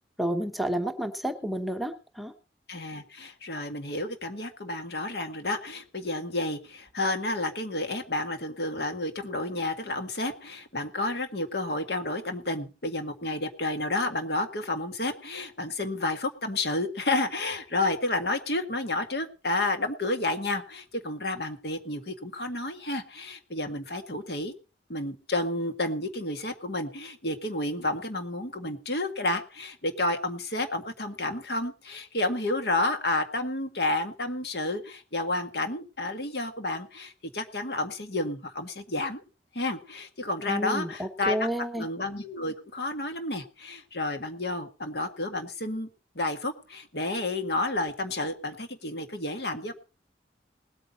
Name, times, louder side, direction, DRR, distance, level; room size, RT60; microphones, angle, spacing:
voice 1, 0.2-2.3 40.5-41.9, right 1 dB, ahead, 6 dB, 1.0 m, -30 dB
voice 2, 2.7-24.5 24.9-39.2 39.5-41.5 41.8-45.9 46.2-49.7, left 2 dB, 65° left, 6 dB, 1.8 m, -31 dB
19.5 x 8.9 x 4.1 m, 0.32 s
head